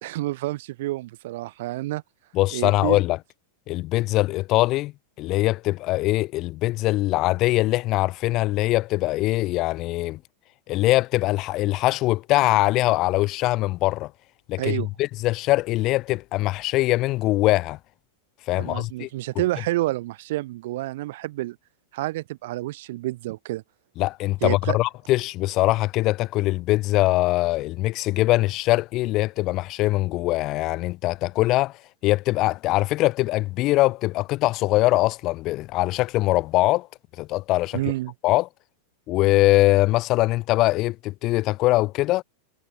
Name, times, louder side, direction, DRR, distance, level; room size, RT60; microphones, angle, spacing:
voice 1, 0.0-2.0 2.5-3.0 14.6-14.9 18.6-21.6 21.9-23.6 24.4-24.8 37.7-38.1, right 17 dB, 55° right, 2.4 m, -29 dB
voice 2, 2.3-3.2 3.7-4.9 5.2-10.2 10.7-14.1 14.5-17.8 18.5-19.1 24.0-31.7 32.0-36.9 37.2-37.8 38.2-38.5 39.1-42.2, left 18 dB, 40° left, 2.6 m, -22 dB
figure-of-eight pair, 90°, 0 cm